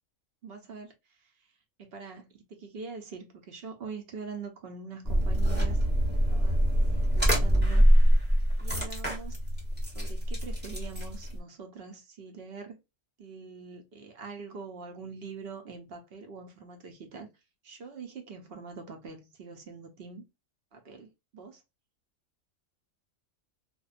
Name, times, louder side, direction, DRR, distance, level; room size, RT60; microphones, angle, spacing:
voice 1, 0.4-1.2 1.8-7.9 8.6-9.4 9.9-12.8 13.2-17.3 17.6-20.2 20.7-21.6, right 5 dB, 55° right, 0.8 m, -44 dB
sound 1, 5.0-11.4, equal, 10° right, 0.6 m, -24 dB
2.5 x 2.2 x 2.4 m
omnidirectional pair, 1.4 m